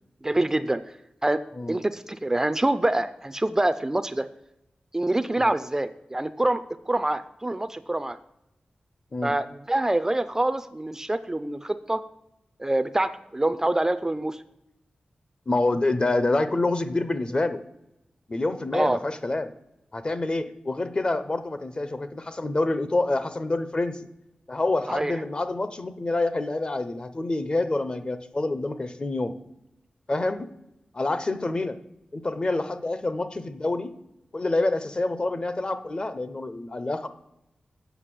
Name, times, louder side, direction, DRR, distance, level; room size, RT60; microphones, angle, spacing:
voice 1, 0.2-0.8 1.2-1.4 1.7-4.3 4.9-8.2 9.2-12.0 12.6-14.4 18.7-19.0 24.9-25.1, right 1 dB, 20° right, 11 dB, 0.4 m, -25 dB
voice 2, 15.5-17.6 18.3-19.5 19.9-24.1 24.5-29.3 30.1-30.5 30.9-31.8 32.1-33.9 34.3-37.1, left 2 dB, 35° left, 11 dB, 0.8 m, -27 dB
8.2 x 6.0 x 7.6 m, 0.86 s
wide cardioid pair, 95°, 3 cm